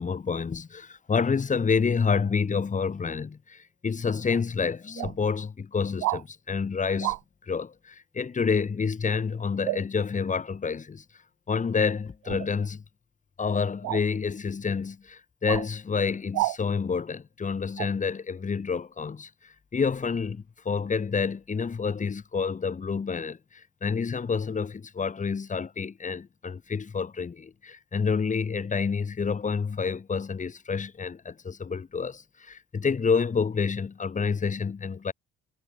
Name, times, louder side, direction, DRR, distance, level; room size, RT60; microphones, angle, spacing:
voice 1, 0.0-7.2 7.4-11.0 11.5-12.8 13.4-35.1, left 5 dB, 25° left, 1.0 m, -28 dB
sound 1, 4.3-4.4 5.0-5.2 6.0-6.2 7.0-7.2 9.6-9.8 12.2-12.5 13.8-14.0 15.5-15.7 16.3-16.6 17.8-17.9, right 21 dB, 60° right, 0.5 m, -29 dB
hypercardioid pair, 60°, 31 cm